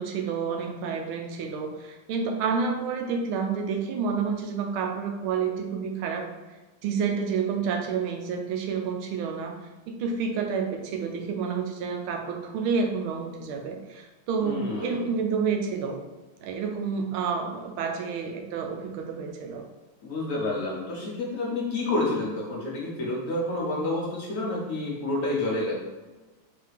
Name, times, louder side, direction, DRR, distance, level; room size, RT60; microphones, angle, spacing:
voice 1, 0.0-6.3 6.8-9.6 9.9-16.0 16.4-19.6, right 5 dB, 80° right, 3 dB, 1.4 m, -29 dB
voice 2, 14.4-15.1 20.0-25.8, left 2 dB, 60° left, -4 dB, 0.8 m, -29 dB
4.6 x 2.8 x 3.3 m, 1.2 s
omnidirectional pair, 2.4 m